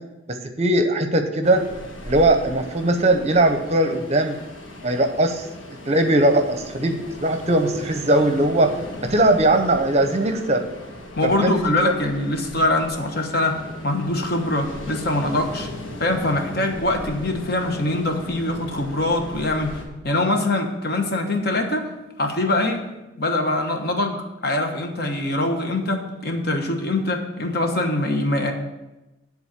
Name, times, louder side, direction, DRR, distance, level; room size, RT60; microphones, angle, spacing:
voice 1, 0.3-1.6 2.0-4.4 4.8-5.4 5.9-8.7 9.0-10.6 11.2-11.9, right 1 dB, 35° right, 6 dB, 0.7 m, -20 dB
Ocean, 1.4-19.8, left 1 dB, 85° left, 1.5 m, -38 dB
voice 2, 11.2-15.7 16.0-19.8 20.0-21.9 22.2-22.8 23.2-28.5, left 2 dB, 50° left, 4 dB, 1.1 m, -23 dB
10.0 x 3.9 x 7.2 m, 1.0 s
head